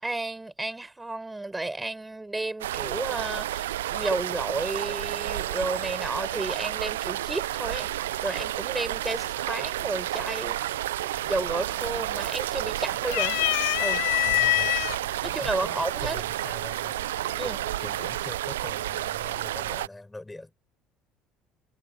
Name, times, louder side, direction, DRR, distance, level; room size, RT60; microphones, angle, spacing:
voice 1, 0.0-10.8 11.3-13.5 13.8-14.1 15.2-16.2 17.4-17.6, right 2 dB, 15° right, 7.2 m, -32 dB
sound 1, 2.6-19.9, right 14 dB, 85° right, 0.5 m, -31 dB
sound 2, 11.2-11.6 11.9-12.6 13.0-15.0 15.8-15.9 17.2-17.6, left 23 dB, 75° left, 1.3 m, -25 dB
voice 2, 14.2-17.0 17.4-20.5, left 2 dB, 10° left, 6.9 m, -43 dB
hypercardioid pair, 65°, 0 cm